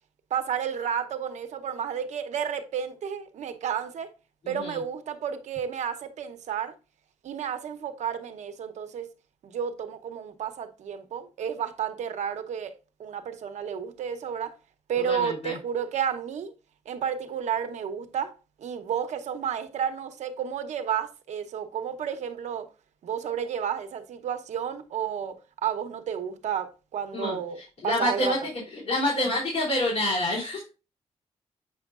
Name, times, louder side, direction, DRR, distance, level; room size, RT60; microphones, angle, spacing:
voice 1, 0.3-4.1 4.5-6.7 7.2-9.1 9.4-12.7 13.0-14.6 14.9-16.5 16.9-22.7 23.0-25.4 25.6-27.6 27.8-28.3, right 8 dB, 85° right, 0.8 m, -31 dB
voice 2, 4.4-4.8 15.0-15.6 27.1-28.4 28.7-30.7, left 1 dB, 65° left, 3.2 m, -28 dB
7.7 x 5.4 x 2.4 m
wide cardioid pair, 130°, 12 cm